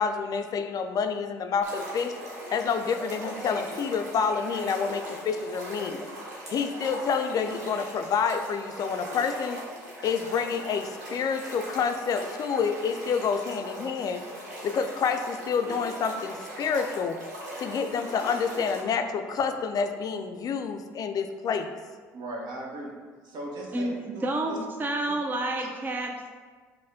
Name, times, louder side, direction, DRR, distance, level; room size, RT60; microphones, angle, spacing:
voice 1, 0.0-2.1 2.5-6.1 6.5-9.6 10.0-14.2 14.6-17.2 17.6-21.7, left 6 dB, 45° left, 7 dB, 0.4 m, -28 dB
sound 1, 1.6-18.8, equal, 90° right, 1.0 m, -40 dB
voice 2, 22.1-22.9 23.2-24.6, right 1 dB, 60° right, -1 dB, 1.0 m, -38 dB
voice 3, 23.7-26.3, right 1 dB, 20° right, 2 dB, 0.4 m, -30 dB
5.3 x 2.2 x 3.5 m, 1.5 s
hypercardioid pair, 60°, 9 cm